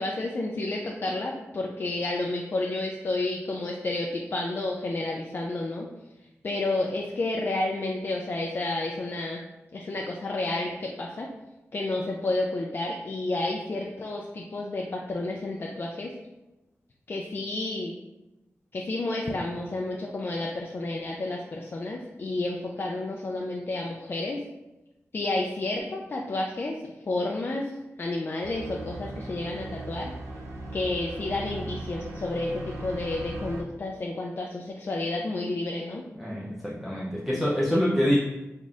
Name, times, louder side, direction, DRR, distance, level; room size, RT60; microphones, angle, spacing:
voice 1, 0.0-5.9 6.4-9.4 9.7-11.3 11.7-16.1 17.1-18.0 18.7-24.4 25.1-27.7 28.0-30.1 30.7-36.0 37.3-37.4, left 2 dB, 45° left, -1 dB, 0.4 m, -30 dB
sound 1, 28.4-33.6, right 1 dB, 85° right, 0.7 m, -38 dB
voice 2, 36.2-38.2, equal, 5° right, -7 dB, 0.6 m, -25 dB
4.0 x 3.5 x 2.4 m, 1.0 s
wide cardioid pair, 100°, 5 cm